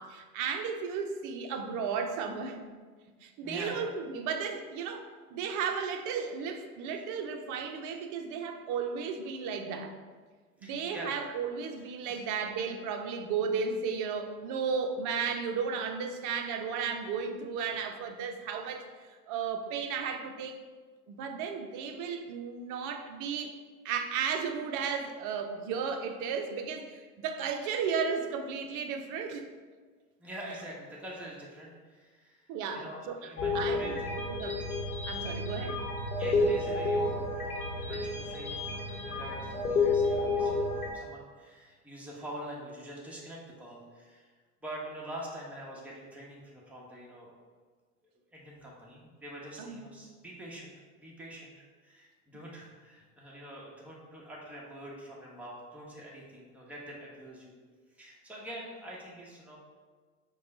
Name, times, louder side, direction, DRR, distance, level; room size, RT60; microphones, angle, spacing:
voice 1, 0.0-2.6 3.2-9.9 10.6-18.8 19.1-20.6 21.1-23.5 23.8-29.5 32.5-33.2 33.5-34.6 35.1-35.8 49.6-49.9, right 6 dB, 45° right, 5 dB, 0.6 m, -34 dB
voice 2, 3.4-3.8 10.6-11.1 12.0-12.2 30.2-32.4 32.7-34.1 34.4-34.5 35.3-35.4 36.2-44.3 44.6-47.3 48.3-50.7 51.0-51.5 51.8-57.5 57.9-59.6, right 1 dB, 5° right, -4 dB, 1.1 m, -45 dB
sound 1, 33.4-40.9, left 3 dB, 90° left, 1.1 m, -30 dB
5.2 x 2.3 x 4.2 m, 1.5 s
hypercardioid pair, 90°, 43 cm